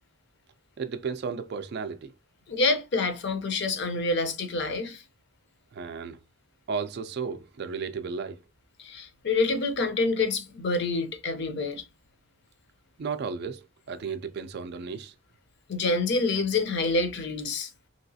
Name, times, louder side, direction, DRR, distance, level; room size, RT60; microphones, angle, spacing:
voice 1, 0.8-2.1 5.7-6.2 6.7-8.4 13.0-15.1, right 5 dB, 50° right, 0.3 m, -34 dB
voice 2, 2.5-5.0 8.8-11.8 15.7-17.7, left 3 dB, 55° left, 0.6 m, -27 dB
3.1 x 2.9 x 2.7 m
head